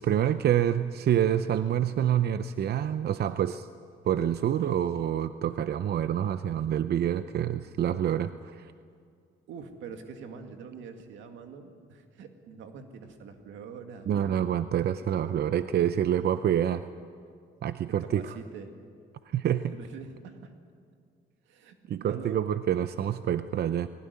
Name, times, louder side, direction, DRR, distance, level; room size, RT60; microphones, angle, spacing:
voice 1, 0.0-3.7 4.0-8.7 14.1-16.8 17.6-18.4 19.3-19.7 21.9-23.9, right 10 dB, 60° right, 12 dB, 0.6 m, -27 dB
voice 2, 9.5-14.1 15.1-16.0 18.1-18.7 19.7-20.5 21.4-22.4, right 6 dB, 90° right, 5 dB, 2.1 m, -44 dB
20.0 x 18.0 x 9.5 m, 2.3 s
cardioid pair, 90°, 19 cm